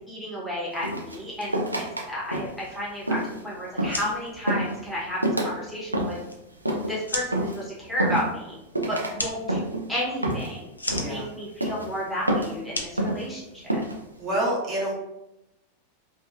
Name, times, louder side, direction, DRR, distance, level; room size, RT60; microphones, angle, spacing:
voice 1, 0.1-6.2 6.9-8.6 8.9-13.6, equal, 5° left, -7 dB, 0.8 m, -32 dB
sound 1, 0.8-2.0 2.3-2.7 3.1-3.4 3.8-4.1 4.5-4.8 5.2-5.5 5.9-6.3 6.7-7.0 7.3-7.6 8.0-8.5 8.7-9.1 9.5-9.9 10.2-10.6 10.9-11.2 11.6-11.9 12.3-12.6 13.0-13.3 13.7-14.0, right 1 dB, 85° right, 0.3 m, -27 dB
sound 2, 3.8-13.9, left 2 dB, 80° left, 0.3 m, -38 dB
voice 2, 10.9-11.3 14.2-14.9, right 1 dB, 30° right, -4 dB, 0.9 m, -27 dB
2.7 x 2.3 x 2.3 m, 0.89 s
figure-of-eight pair, 90°, 0 cm